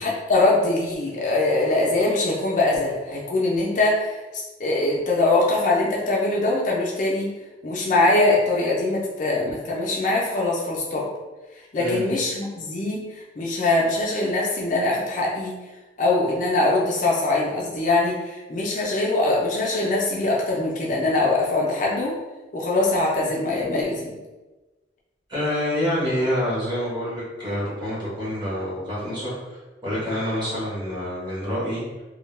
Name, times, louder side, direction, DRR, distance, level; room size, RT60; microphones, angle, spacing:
voice 1, 0.0-7.3 7.6-11.1 11.7-15.6 16.0-22.2 22.5-24.1, left 2 dB, 45° left, -3 dB, 0.4 m, -22 dB
voice 2, 25.3-29.3 29.8-31.8, equal, 25° right, -8 dB, 0.9 m, -27 dB
2.2 x 2.1 x 3.0 m, 1.2 s
head